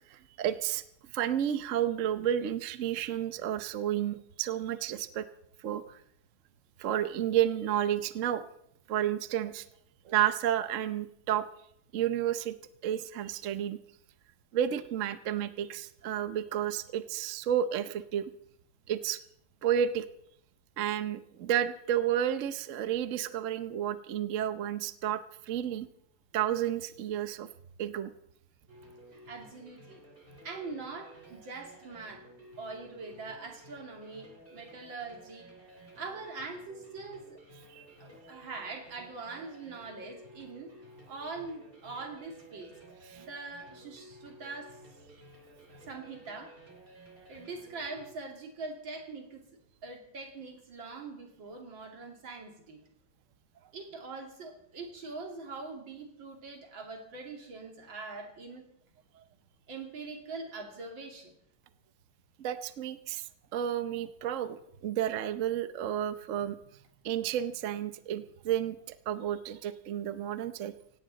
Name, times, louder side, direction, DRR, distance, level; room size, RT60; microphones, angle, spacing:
voice 1, 0.1-0.8 1.1-5.2 5.6-6.0 6.8-8.4 8.9-9.6 10.0-11.5 11.9-12.5 12.8-13.8 14.5-18.2 18.9-19.2 19.6-20.0 20.8-25.9 26.3-27.5 27.8-28.1 37.7-37.8 43.1-43.2 62.4-63.2 63.5-66.6 67.0-70.7, right 10 dB, 60° right, 12 dB, 0.9 m, -31 dB
sound 1, 28.7-48.1, right 1 dB, 25° right, 3.3 m, -54 dB
voice 2, 29.1-30.0 30.4-32.2 32.6-35.5 36.0-37.4 38.0-40.7 41.1-42.7 43.2-44.8 45.8-46.6 47.3-49.4 49.8-52.8 53.7-58.6 59.7-61.3, right 3 dB, 75° right, 2 dB, 3.2 m, -43 dB
17.5 x 17.0 x 4.0 m, 0.72 s
omnidirectional pair, 2.1 m